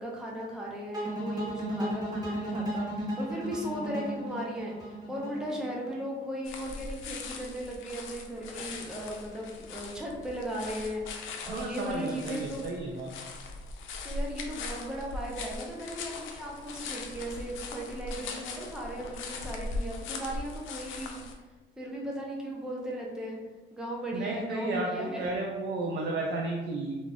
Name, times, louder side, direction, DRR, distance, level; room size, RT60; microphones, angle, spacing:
voice 1, 0.0-12.7 14.0-21.2 21.8-23.4 23.7-25.3, equal, 5° right, -2 dB, 0.6 m, -37 dB
sound 1, 0.9-6.0, equal, 20° right, 1.1 m, -34 dB
sound 2, 6.5-21.3, left 3 dB, 85° left, 0.4 m, -40 dB
voice 2, 11.4-13.1 24.1-27.0, right 2 dB, 60° right, -1 dB, 0.5 m, -33 dB
2.4 x 2.4 x 3.3 m, 1.3 s
cardioid pair, 90°, 20 cm